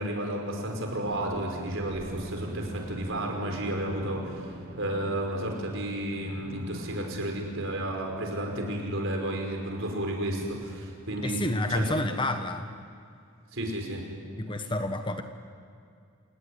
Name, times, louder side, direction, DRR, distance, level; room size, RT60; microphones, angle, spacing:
voice 1, 0.0-11.4 11.7-12.0 13.5-14.0, right 1 dB, 60° right, 2 dB, 5.2 m, -32 dB
sound 1, 1.0-11.8, right 1 dB, 40° right, 1.8 m, -44 dB
voice 2, 11.2-12.7 14.3-15.2, left 2 dB, 20° left, 7 dB, 1.1 m, -29 dB
29.0 x 17.0 x 10.0 m, 2.4 s
head